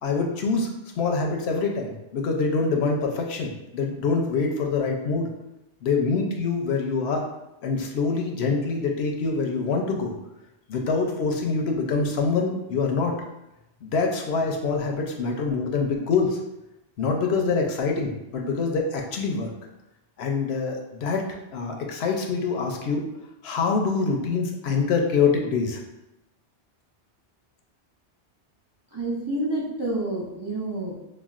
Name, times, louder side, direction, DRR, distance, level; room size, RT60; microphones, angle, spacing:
voice 1, 0.0-0.7 1.0-5.3 5.8-7.3 7.6-10.1 10.7-13.1 13.8-16.4 17.0-19.5 20.2-23.1 23.4-25.8, left 4 dB, 70° left, 2 dB, 0.8 m, -25 dB
voice 2, 28.9-30.9, right 1 dB, 30° right, -6 dB, 0.5 m, -28 dB
5.6 x 2.3 x 2.4 m, 0.92 s
omnidirectional pair, 1.1 m